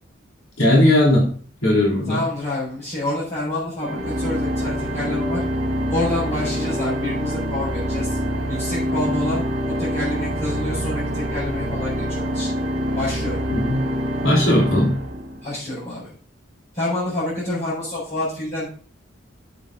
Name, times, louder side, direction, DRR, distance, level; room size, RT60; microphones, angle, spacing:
voice 1, 0.6-1.2 1.6-2.2 13.5-13.8 14.2-14.9, left 1 dB, 85° left, -4 dB, 3.8 m, -17 dB
voice 2, 2.1-5.4 5.9-8.2 8.5-9.5 9.8-12.5 13.0-13.4 15.4-16.1 16.7-18.7, left 1 dB, 35° left, -10 dB, 5.2 m, -27 dB
Organ, 3.8-15.6, equal, 55° right, 2.0 m, -26 dB
8.1 x 7.4 x 3.8 m, 0.43 s
head